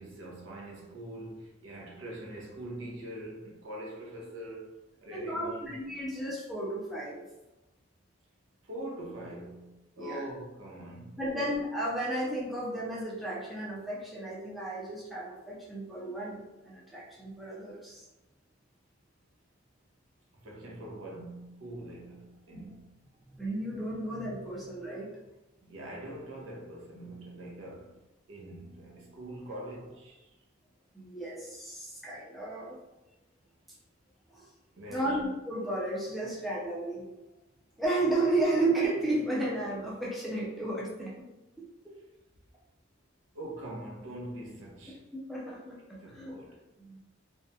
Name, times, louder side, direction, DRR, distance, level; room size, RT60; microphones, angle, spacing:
voice 1, 0.0-4.7 5.0-5.6 8.6-11.5 20.4-22.9 25.6-28.0 28.3-30.3 34.8-35.2 43.3-45.0 46.0-46.6, right 1 dB, 80° right, 0.6 m, -43 dB
voice 2, 5.1-7.2 10.0-10.2 11.2-18.1 22.5-22.7 23.4-25.1 30.9-32.8 34.3-34.5 34.9-37.1 37.8-41.3 41.6-41.9 45.1-46.3 46.8-47.0, right 2 dB, ahead, 0.4 m, -33 dB
2.4 x 2.1 x 2.6 m
head